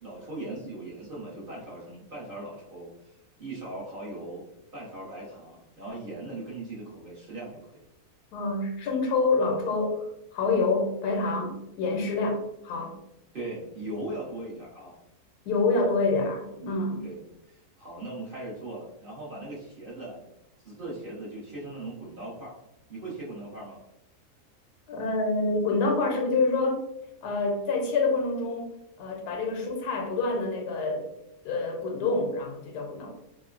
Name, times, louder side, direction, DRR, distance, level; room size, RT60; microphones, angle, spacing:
voice 1, 0.0-4.4 4.7-7.8 13.3-15.0 17.0-17.2 17.5-20.2 20.6-22.5 22.9-23.8, right 2 dB, 45° right, -7 dB, 0.7 m, -39 dB
voice 2, 8.3-10.1 10.3-13.0 15.4-17.1 24.9-26.8 27.2-28.7 29.0-31.1 31.4-33.1, left 3 dB, 90° left, 2 dB, 1.2 m, -27 dB
3.0 x 2.1 x 2.4 m, 0.84 s
omnidirectional pair, 1.7 m